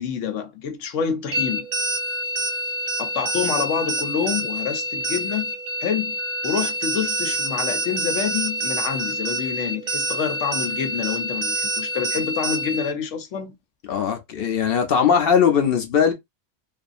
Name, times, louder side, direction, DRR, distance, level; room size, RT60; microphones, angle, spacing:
voice 1, 0.0-1.7 3.0-5.5 5.8-6.1 6.4-13.6, left 7 dB, 85° left, 1.0 m, -27 dB
sound 1, 1.3-12.9, right 1 dB, 55° right, 0.5 m, -27 dB
voice 2, 13.9-16.1, left 7 dB, 60° left, 0.8 m, -19 dB
2.5 x 2.5 x 2.4 m
omnidirectional pair, 1.2 m